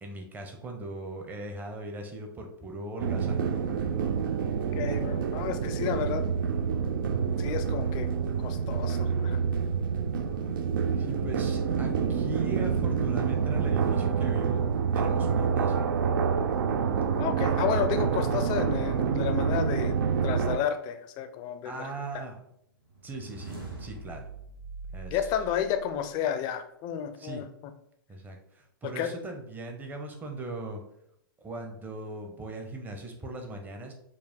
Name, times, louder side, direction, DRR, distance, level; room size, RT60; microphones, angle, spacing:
voice 1, 0.0-3.5 11.0-14.7 14.9-15.8 21.6-22.4 23.0-24.3 24.9-25.3 27.2-27.4 28.1-30.8 31.4-33.9, right 2 dB, 15° right, 3 dB, 0.7 m, -39 dB
sound 1, 3.0-20.6, right 6 dB, 65° right, 0.4 m, -27 dB
voice 2, 4.8-6.2 7.4-8.1 8.4-9.4 17.2-21.9 22.1-22.2 25.1-27.5 29.0-29.1, left 9 dB, 35° left, 8 dB, 0.5 m, -31 dB
sound 2, 22.9-26.2, right 4 dB, 85° right, 1.4 m, -43 dB
4.8 x 2.1 x 3.5 m, 0.75 s
hypercardioid pair, 110°, 12 cm